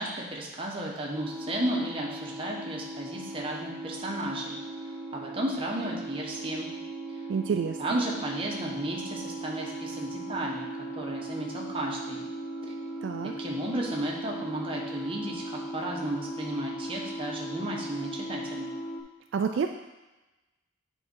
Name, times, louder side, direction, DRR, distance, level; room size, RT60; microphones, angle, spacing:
voice 1, 0.0-6.7 7.1-7.3 7.8-12.2 13.4-18.7, right 1 dB, 25° right, -2 dB, 1.1 m, -34 dB
sound 1, 1.1-19.0, right 1 dB, ahead, 0.8 m, -38 dB
voice 2, 7.3-8.0 13.0-13.3 19.3-19.7, right 6 dB, 65° right, 6 dB, 0.3 m, -28 dB
8.8 x 3.7 x 4.5 m, 1.1 s
head